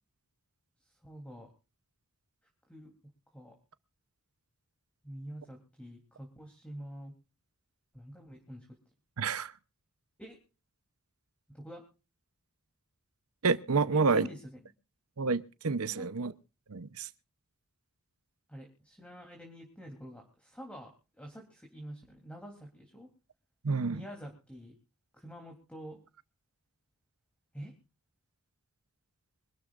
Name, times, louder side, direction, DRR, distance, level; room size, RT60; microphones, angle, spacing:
voice 1, 1.0-1.5 2.7-2.9 3.3-3.6 5.0-7.1 7.9-8.8 10.2-10.4 11.5-11.8 13.9-14.7 15.9-16.1 18.5-23.1 23.9-24.8 25.1-26.0 27.5-27.7, equal, 5° left, 3.3 m, -47 dB
voice 2, 9.2-9.5 13.4-14.3 15.2-16.3 16.7-17.1 23.6-24.0, right 4 dB, 75° right, 0.8 m, -29 dB
25.5 x 12.5 x 2.5 m
head